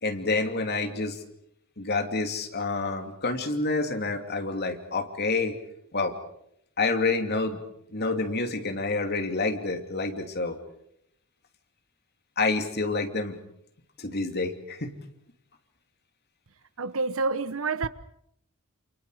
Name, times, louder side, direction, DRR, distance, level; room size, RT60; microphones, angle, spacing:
voice 1, 0.0-1.2 1.8-5.6 5.9-6.2 6.8-7.6 7.9-10.6 12.4-13.4 14.0-15.0, left 3 dB, 50° left, 2.8 m, -28 dB
voice 2, 16.8-17.9, right 3 dB, 65° right, 1.0 m, -28 dB
29.0 x 28.0 x 5.0 m
head